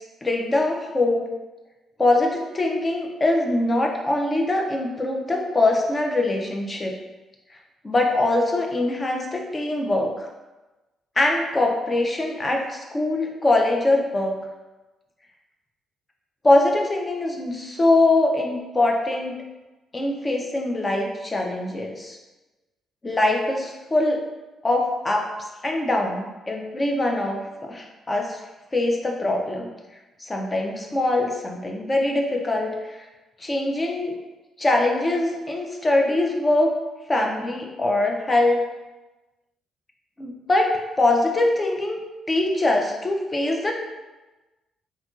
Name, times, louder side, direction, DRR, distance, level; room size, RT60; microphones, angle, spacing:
voice 1, 0.2-1.3 2.0-7.0 7.8-10.3 11.2-14.4 16.4-19.4 19.9-22.2 23.0-24.2 24.6-25.3 25.6-28.4 28.7-29.7 30.2-33.1 33.4-34.2 34.6-36.7 37.1-38.6 40.2-42.0 42.3-43.7, left 2 dB, 25° left, 1 dB, 0.4 m, -23 dB
2.8 x 2.5 x 2.3 m, 1.1 s
cardioid pair, 90°, 0 cm